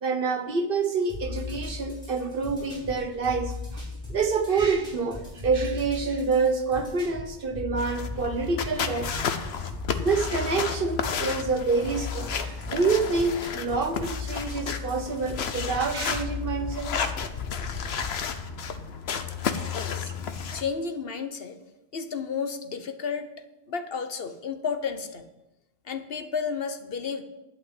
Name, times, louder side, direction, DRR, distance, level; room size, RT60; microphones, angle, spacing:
voice 1, 0.0-9.2 10.0-17.1 20.0-20.1, right 4 dB, 60° right, 7 dB, 1.3 m, -27 dB
sound 1, 1.1-18.2, left 3 dB, 5° left, 4.8 m, -38 dB
sound 2, 7.8-20.6, left 6 dB, 90° left, 1.1 m, -32 dB
voice 2, 19.7-20.1 20.5-21.6 21.9-23.3 23.7-25.3 25.8-27.2, left 6 dB, 70° left, 8 dB, 1.1 m, -32 dB
11.5 x 5.7 x 8.8 m, 0.97 s
omnidirectional pair, 1.0 m